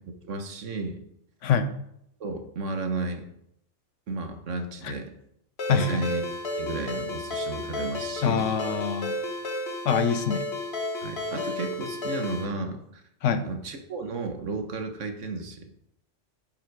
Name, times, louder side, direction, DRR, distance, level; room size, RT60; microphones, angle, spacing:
voice 1, 0.1-1.0 2.2-3.3 4.1-5.1 5.7-6.2 6.6-8.5 11.0-13.0 13.4-15.7, right 3 dB, 90° right, 6 dB, 1.5 m, -33 dB
voice 2, 1.4-1.7 4.8-4.9 5.7-6.0 8.2-9.2 9.8-10.4 13.2-13.5, left 6 dB, 85° left, 10 dB, 1.1 m, -25 dB
Ringtone, 5.6-12.5, left 1 dB, 60° left, 1.6 m, -32 dB
11.0 x 5.6 x 4.7 m, 0.77 s
omnidirectional pair, 1.2 m